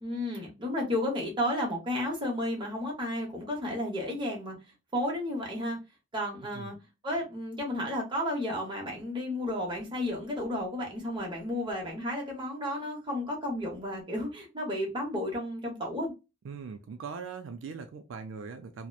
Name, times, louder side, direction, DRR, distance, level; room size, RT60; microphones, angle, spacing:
voice 1, 0.0-4.6 4.9-5.8 6.1-6.7 7.0-16.1, left 1 dB, 25° right, -1 dB, 0.8 m, -32 dB
voice 2, 16.4-18.9, right 5 dB, 75° right, 7 dB, 0.3 m, -40 dB
2.8 x 2.0 x 2.2 m, 0.26 s
head